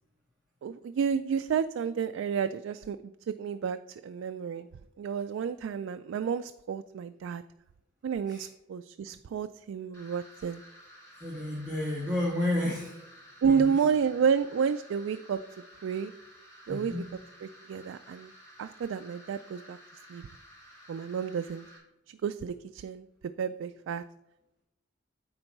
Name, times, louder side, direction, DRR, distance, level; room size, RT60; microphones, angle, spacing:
voice 1, 0.6-4.7 5.0-7.4 8.0-10.6 13.4-15.4 15.8-16.1 16.7-17.0 17.4-18.3 18.6-19.8 20.1-20.2 20.9-21.6 22.1-23.1 23.4-24.0, right 6 dB, 90° right, 10 dB, 0.3 m, -30 dB
sound 1, 9.9-21.8, equal, 15° left, 2.6 m, -53 dB
voice 2, 11.2-13.0 13.4-13.9 16.7-17.0, left 1 dB, 5° right, -7 dB, 1.7 m, -32 dB
8.9 x 4.0 x 5.3 m, 0.92 s
head